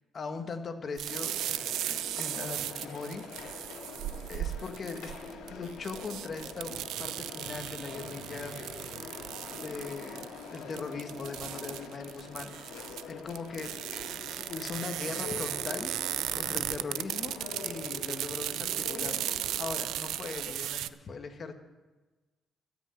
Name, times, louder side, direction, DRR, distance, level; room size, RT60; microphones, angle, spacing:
voice 1, 0.1-3.7 4.3-5.1 5.5-8.6 9.6-12.8 13.1-13.9 14.5-15.9 16.3-17.3 17.6-19.2 19.6-21.5, left 4 dB, 45° left, 6 dB, 1.6 m, -40 dB
sound 1, 1.0-20.9, right 12 dB, 85° right, 0.4 m, -36 dB
sound 2, 1.1-20.5, left 5 dB, 85° left, 2.1 m, -45 dB
13.5 x 6.3 x 9.8 m, 1.2 s
cardioid pair, 90°, 0 cm